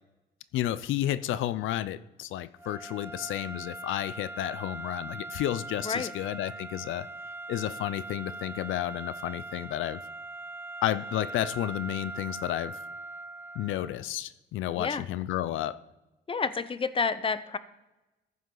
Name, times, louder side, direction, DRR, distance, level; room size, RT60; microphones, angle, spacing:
voice 1, 0.5-7.1 7.5-10.0 10.8-12.8 13.6-15.8, left 13 dB, 80° left, 0.5 m, -31 dB
sound 1, 2.6-14.1, right 2 dB, 10° right, 0.4 m, -41 dB
voice 2, 16.3-17.6, left 5 dB, 25° left, 0.8 m, -29 dB
15.0 x 7.8 x 3.9 m
cardioid pair, 90°, 20 cm